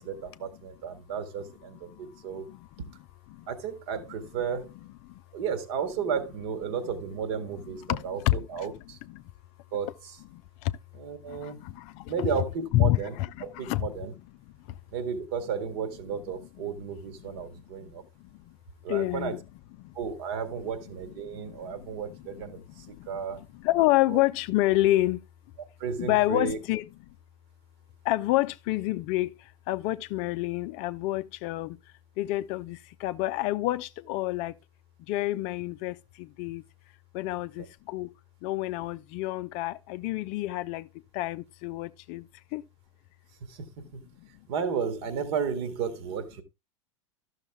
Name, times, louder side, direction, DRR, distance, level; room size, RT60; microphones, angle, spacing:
voice 1, 0.0-2.5 3.5-4.7 5.3-9.0 9.7-10.2 11.0-11.7 12.1-14.1 14.9-18.0 18.8-19.4 19.9-23.4 24.1-24.2 25.8-26.6 37.4-37.5 43.4-44.0 44.5-46.4, right 6 dB, 50° right, 1.6 m, -33 dB
voice 2, 2.3-2.7 3.3-3.5 5.1-5.2 7.9-8.7 9.1-9.2 10.3-10.7 11.3-12.3 12.7-13.8 14.7-14.8 17.2-17.3 18.2-18.6 18.9-19.4 19.8-19.9 21.3-21.9 22.8-23.1 23.6-25.2 26.0-26.8 28.0-31.8 32.2-34.6 35.1-36.6 37.1-38.1 38.4-42.7 44.2-44.3, left 16 dB, 40° left, 0.5 m, -29 dB
12.5 x 6.5 x 3.4 m
figure-of-eight pair, 85°, 17 cm